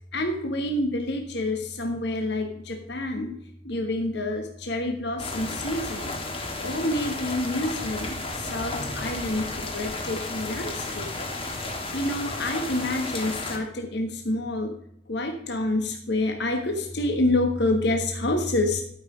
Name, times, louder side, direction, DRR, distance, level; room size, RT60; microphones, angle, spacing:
voice 1, 0.1-3.3 3.6-6.1 6.6-11.1 11.9-14.7 15.1-18.8, left 1 dB, 60° left, 3 dB, 1.3 m, -28 dB
sound 1, 5.2-13.6, left 2 dB, 30° left, 1.5 m, -33 dB
12.5 x 5.8 x 4.9 m, 0.73 s
head